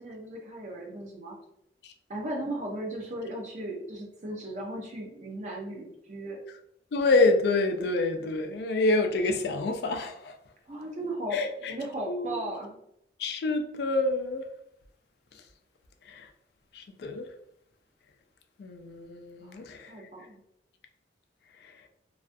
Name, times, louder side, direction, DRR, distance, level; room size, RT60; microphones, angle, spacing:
voice 1, 0.0-1.4 2.1-6.4 10.7-11.4 11.7-12.8 19.4-19.6 19.9-20.4, right 1 dB, 40° right, 0.6 m, -36 dB
voice 2, 6.9-10.4 11.3-11.7 12.1-12.3 13.2-14.4 16.0-16.3 16.7-17.2 18.6-19.9 21.6-21.8, left 2 dB, 65° left, 0.3 m, -27 dB
2.3 x 2.3 x 2.5 m
head